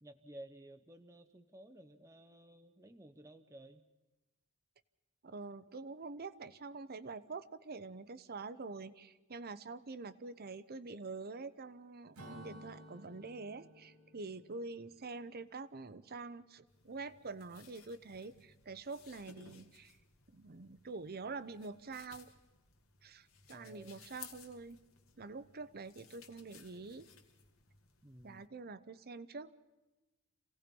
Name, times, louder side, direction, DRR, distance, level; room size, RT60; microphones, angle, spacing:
voice 1, 0.0-3.8 23.5-24.1 28.0-28.4, right 1 dB, 15° right, 8 dB, 0.8 m, -55 dB
voice 2, 5.2-20.0 20.3-22.3 23.0-24.8 25.2-27.1 28.2-29.5, right 3 dB, 45° right, 15 dB, 0.8 m, -46 dB
Acoustic guitar / Strum, 12.1-15.8, equal, 85° right, 2.9 m, -55 dB
sound 1, 16.7-28.5, left 7 dB, 65° left, 1.9 m, -60 dB
27.5 x 17.5 x 5.3 m, 1.1 s
head